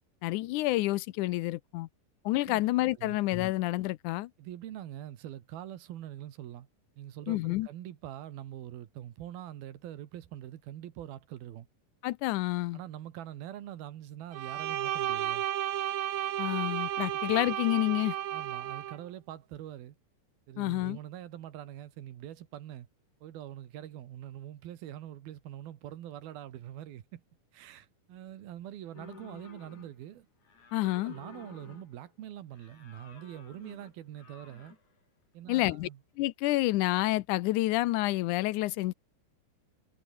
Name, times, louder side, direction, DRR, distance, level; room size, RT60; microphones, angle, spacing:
voice 1, 0.2-1.9 2.3-4.3 7.3-7.7 12.0-12.8 16.4-18.2 20.6-21.0 30.7-31.1 35.5-35.9 36.2-38.9, left 18 dB, 85° left, 1.8 m, -29 dB
voice 2, 4.4-6.7 7.0-11.7 12.7-15.5 17.1-17.2 18.3-20.0 20.5-22.9 23.2-27.2 27.5-30.3 31.1-34.8 35.3-36.0, right 12 dB, 80° right, 3.5 m, -44 dB
Bowed string instrument, 14.3-19.0, right 12 dB, 60° right, 2.4 m, -33 dB
sound 1, 28.9-30.1 30.4-32.1 32.5-34.9, left 4 dB, 50° left, 6.4 m, -53 dB
omnidirectional pair, 4.3 m